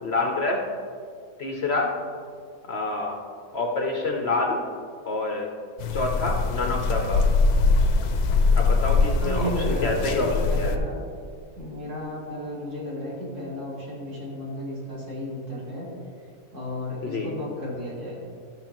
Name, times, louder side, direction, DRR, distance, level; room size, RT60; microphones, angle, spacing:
voice 1, 0.0-0.6 1.4-1.9 2.7-3.2 3.5-4.6 5.0-5.5 5.9-7.3 8.5-10.7 17.0-17.3, left 2 dB, 55° left, 0 dB, 0.8 m, -27 dB
sound 1, 5.8-10.8, left 3 dB, 80° left, 1.1 m, -22 dB
voice 2, 9.2-11.0 11.5-15.9 16.5-18.2, equal, 75° right, -7 dB, 3.1 m, -33 dB
13.0 x 6.3 x 2.9 m, 2.2 s
omnidirectional pair, 1.7 m